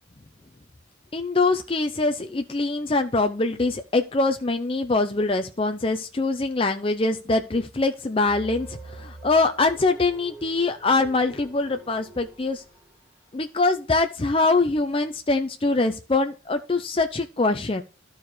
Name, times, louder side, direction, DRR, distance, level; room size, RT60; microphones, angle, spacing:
voice 1, 1.1-12.6 13.3-17.8, left 3 dB, 30° left, 6 dB, 0.5 m, -23 dB
sound 1, 8.2-13.2, right 2 dB, 10° right, 2.3 m, -45 dB
13.5 x 4.8 x 3.2 m, 0.32 s
head